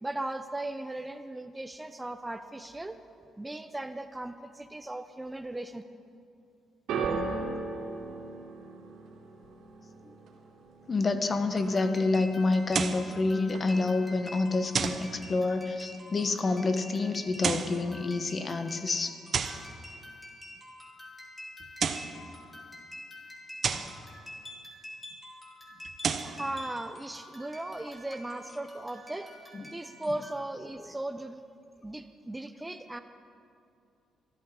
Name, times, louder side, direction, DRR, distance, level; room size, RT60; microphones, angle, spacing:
voice 1, 0.0-3.0 3.4-5.8 26.2-29.3 29.7-31.4 31.8-33.0, right 1 dB, 15° right, 9 dB, 0.6 m, -37 dB
sound 1, 6.9-13.2 13.4-14.1 14.8-14.9, right 4 dB, 80° right, 2.7 m, -38 dB
voice 2, 10.9-19.2 23.7-23.9 29.5-29.6, left 3 dB, 35° left, 8 dB, 1.1 m, -28 dB
sound 2, 11.5-30.3, left 1 dB, 10° left, 3.9 m, -48 dB
sound 3, 12.7-13.1 14.7-15.1 17.3-17.8 19.3-19.7 21.6-22.2 23.6-24.0 25.8-26.4, right 6 dB, 50° right, 0.8 m, -30 dB
23.5 x 13.5 x 3.8 m, 2.5 s
cardioid pair, 90°, 0 cm